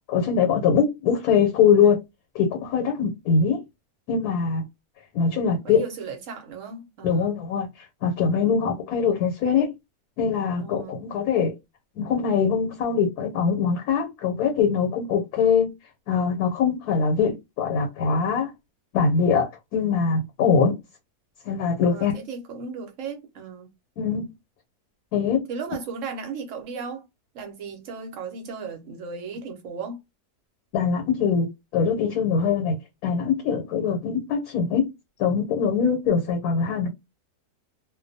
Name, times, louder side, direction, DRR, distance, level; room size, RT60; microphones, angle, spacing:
voice 1, 0.1-2.0 2.3-3.6 4.1-4.6 5.1-5.8 7.0-7.7 8.0-9.7 10.2-11.5 12.0-15.7 16.1-18.5 18.9-20.7 21.5-22.1 24.0-24.3 25.1-25.5 30.7-34.9 35.2-36.9, left 6 dB, 80° left, 1.1 m, -22 dB
voice 2, 5.6-7.4 8.7-8.8 10.6-11.0 21.8-23.7 25.5-27.0 27.3-30.0, right 5 dB, 65° right, 1.0 m, -36 dB
2.5 x 2.2 x 2.6 m
omnidirectional pair, 1.6 m